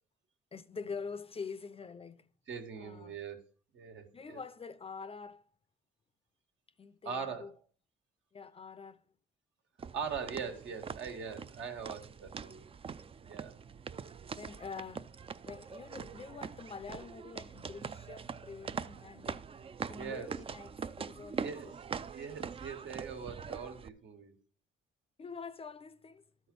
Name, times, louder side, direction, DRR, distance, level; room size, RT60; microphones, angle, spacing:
voice 1, 0.5-2.3 2.8-3.2 4.1-5.4 6.8-7.5 8.3-9.0 14.4-15.2 15.5-19.5 19.8-21.7 25.2-26.2, left 5 dB, 30° left, 0.5 m, -46 dB
voice 2, 2.5-3.5 3.7-4.4 7.0-7.5 9.9-12.7 13.2-13.6 20.0-20.4 21.3-21.7 22.1-24.4, right 6 dB, 70° right, 1.5 m, -41 dB
sound 1, 9.8-23.9, right 6 dB, 30° right, 0.4 m, -43 dB
12.5 x 4.2 x 5.2 m
cardioid pair, 90°, 20 cm